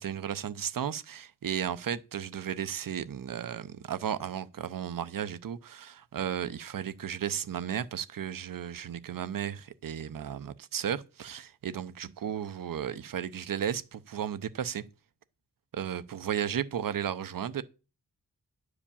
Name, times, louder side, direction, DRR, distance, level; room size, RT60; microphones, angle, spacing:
voice 1, 0.0-14.8 15.7-17.6, right 9 dB, 75° right, 0.7 m, -34 dB
9.9 x 5.0 x 7.0 m
cardioid pair, 65°, 33 cm